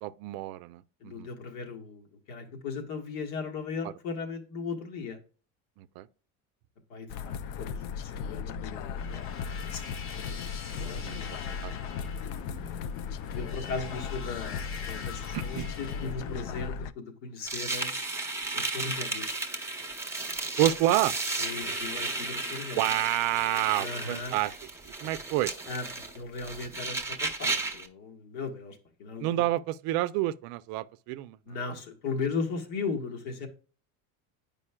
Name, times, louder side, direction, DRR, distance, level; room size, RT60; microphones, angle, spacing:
voice 1, 0.0-1.3 3.8-3.9 5.8-6.1 11.0-11.1 11.5-12.1 12.4-12.6 15.3-15.7 20.6-21.1 22.8-24.5 25.0-25.5 29.2-31.4, right 15 dB, 65° right, 0.5 m, -29 dB
voice 2, 1.0-5.2 6.9-11.5 12.2-12.7 13.3-18.1 18.5-19.4 21.4-22.8 23.8-24.3 25.6-29.4 31.5-33.5, left 4 dB, 75° left, 1.5 m, -37 dB
sound 1, 7.1-16.9, left 7 dB, 60° left, 0.5 m, -37 dB
sound 2, 9.0-16.7, left 5 dB, 35° left, 1.0 m, -44 dB
sound 3, 17.5-27.9, right 3 dB, 5° right, 0.8 m, -34 dB
8.6 x 5.2 x 2.2 m
cardioid pair, 130°, 39 cm